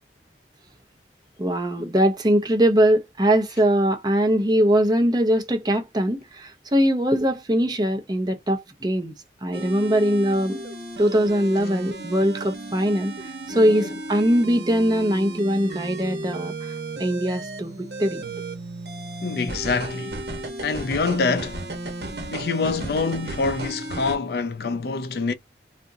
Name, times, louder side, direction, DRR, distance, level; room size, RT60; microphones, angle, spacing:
voice 1, 1.4-9.1 9.4-10.6 11.0-13.1 13.5-16.5 17.0-18.2, equal, 25° right, 0.7 m, -21 dB
sound 1, 9.5-24.2, right 2 dB, 65° right, 1.1 m, -34 dB
voice 2, 13.5-14.0 19.2-20.2 20.6-21.6 22.3-25.3, left 4 dB, 60° left, 0.5 m, -26 dB
3.6 x 2.5 x 2.7 m
head